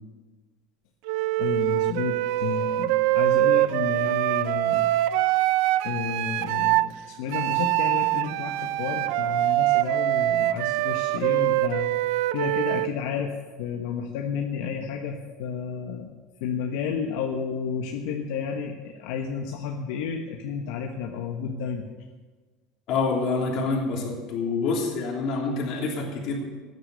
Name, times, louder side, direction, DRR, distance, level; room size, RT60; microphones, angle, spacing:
Wind instrument woodwind instrument, 1.1-6.9 7.3-12.9, right 16 dB, 65° right, 0.5 m, -24 dB
voice 1, 1.4-4.9 5.8-11.9 12.3-13.3 13.6-16.1 16.4-21.9, left 7 dB, 75° left, 2 dB, 1.3 m, -31 dB
voice 2, 22.9-26.4, left 4 dB, 45° left, -1 dB, 3.2 m, -27 dB
15.0 x 9.8 x 6.8 m, 1.3 s
cardioid pair, 165°, 0 cm